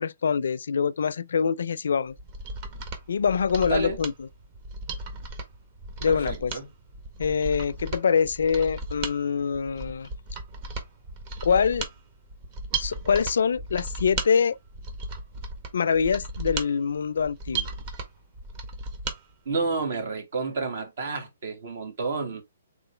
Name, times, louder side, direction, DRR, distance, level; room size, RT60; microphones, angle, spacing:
voice 1, 0.0-2.1 3.1-4.1 6.0-6.5 7.2-10.1 11.4-11.9 12.8-14.6 15.7-17.7, left 6 dB, 75° left, 0.4 m, -24 dB
Mechanisms, 2.1-19.2 19.5-19.6, right 3 dB, 40° right, 1.3 m, -36 dB
voice 2, 3.7-4.0 6.1-6.7 19.5-22.4, right 4 dB, 65° right, 1.8 m, -30 dB
3.8 x 3.7 x 3.2 m
hypercardioid pair, 145°, 0 cm